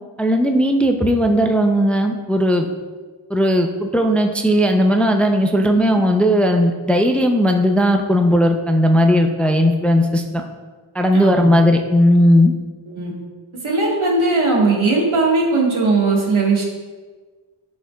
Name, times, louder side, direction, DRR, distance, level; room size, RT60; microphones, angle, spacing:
voice 1, 0.2-2.7 3.3-10.4 10.9-12.5, equal, 5° left, 4 dB, 0.5 m, -16 dB
voice 2, 11.1-11.5 12.9-13.1 13.6-16.6, right 3 dB, 80° right, -2 dB, 1.7 m, -18 dB
11.0 x 5.1 x 2.3 m, 1.4 s
wide cardioid pair, 55°, 48 cm